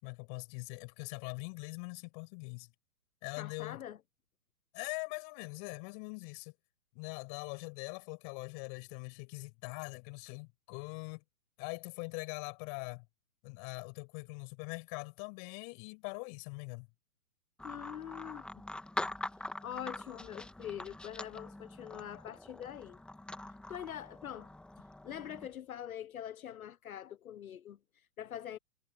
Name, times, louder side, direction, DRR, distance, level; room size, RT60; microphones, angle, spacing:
voice 1, 0.0-2.7 3.2-3.8 4.7-6.5 6.9-11.2 11.6-13.0 13.4-16.9, left 40 dB or more, 35° left, 6.3 m, -42 dB
voice 2, 3.4-4.0 17.6-18.5 19.6-23.0 23.7-24.5 25.0-28.6, left 10 dB, 70° left, 1.1 m, -44 dB
sound 1, 17.6-25.5, left 1 dB, ahead, 1.5 m, -44 dB
hypercardioid pair, 135°, 44 cm